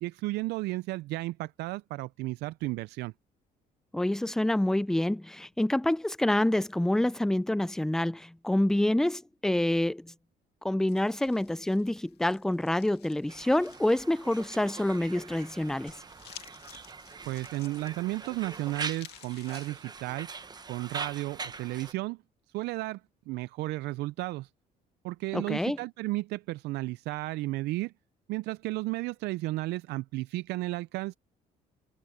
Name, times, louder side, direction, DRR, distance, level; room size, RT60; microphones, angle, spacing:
voice 1, 0.0-3.1 17.3-20.3 20.7-22.2 22.5-23.0 23.3-24.5 25.0-27.9 28.3-31.1, right 19 dB, 80° right, 0.4 m, -33 dB
voice 2, 3.9-10.1 10.6-15.9 25.3-25.8, left 1 dB, 5° left, 0.5 m, -27 dB
sound 1, 10.9-19.7, left 13 dB, 75° left, 2.0 m, -54 dB
Conversation, 13.3-21.9, right 4 dB, 25° right, 1.1 m, -42 dB
cardioid pair, 110°, 17 cm